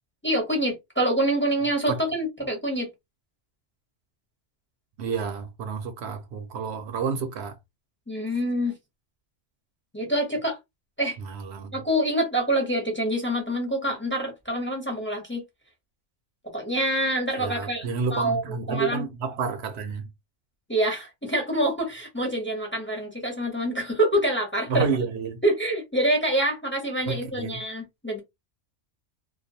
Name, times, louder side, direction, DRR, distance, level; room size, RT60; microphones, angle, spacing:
voice 1, 0.2-2.9 8.1-8.7 9.9-10.6 11.0-11.2 11.7-15.4 16.5-17.9 18.1-18.4 18.7-19.0 20.7-24.9 25.4-28.2, right 1 dB, 10° left, 0.7 m, -26 dB
voice 2, 5.0-7.6 11.2-11.8 17.4-20.1 24.7-25.4 27.1-27.6, right 5 dB, 70° right, 0.8 m, -30 dB
2.3 x 2.2 x 2.7 m
omnidirectional pair, 1.2 m